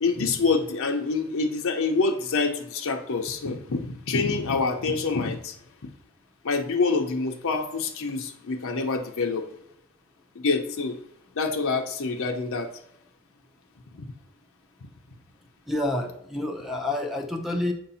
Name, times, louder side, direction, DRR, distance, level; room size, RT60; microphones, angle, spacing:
voice 1, 0.0-5.6 6.4-9.4 10.4-11.0 11.4-12.7, left 4 dB, 65° left, 3 dB, 0.7 m, -26 dB
voice 2, 15.7-17.7, left 1 dB, ahead, 3 dB, 0.7 m, -28 dB
8.0 x 2.7 x 5.6 m, 0.77 s
head